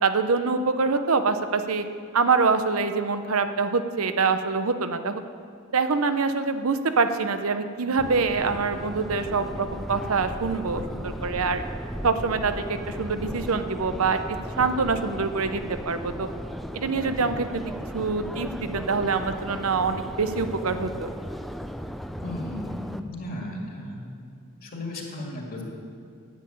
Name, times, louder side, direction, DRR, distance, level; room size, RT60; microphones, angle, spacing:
voice 1, 0.0-1.8 2.1-5.2 5.7-11.6 12.0-16.3 16.7-17.6 17.9-21.1, right 4 dB, 90° right, 9 dB, 0.8 m, -25 dB
Subway metro underground, 8.0-23.0, equal, ahead, 0.4 m, -36 dB
voice 2, 22.2-24.1 24.4-25.6, left 1 dB, 45° left, -1 dB, 2.2 m, -35 dB
10.5 x 7.7 x 8.7 m, 2.2 s
head